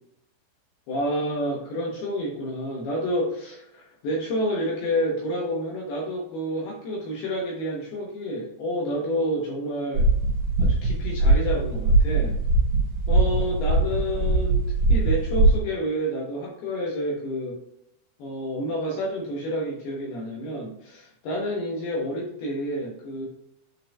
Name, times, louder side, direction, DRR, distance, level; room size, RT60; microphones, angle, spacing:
voice 1, 0.9-10.1 10.6-12.4 13.1-17.6 18.2-23.3, equal, 80° left, -2 dB, 2.3 m, -29 dB
sound 1, 10.0-15.6, right 2 dB, 55° right, 3.3 m, -21 dB
11.0 x 4.7 x 2.3 m, 0.82 s
omnidirectional pair, 5.9 m